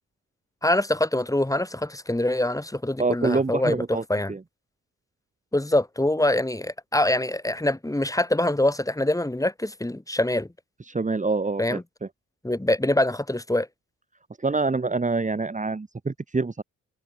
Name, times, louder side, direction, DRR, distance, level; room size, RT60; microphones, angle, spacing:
voice 1, 0.6-3.8 4.1-4.3 5.5-10.5 11.6-11.8 12.4-13.7, left 1 dB, 10° left, 4.9 m, -24 dB
voice 2, 3.0-4.0 4.3-4.4 10.9-12.1 14.4-16.6, right 3 dB, 25° right, 2.3 m, -26 dB
supercardioid pair, 65°, 31 cm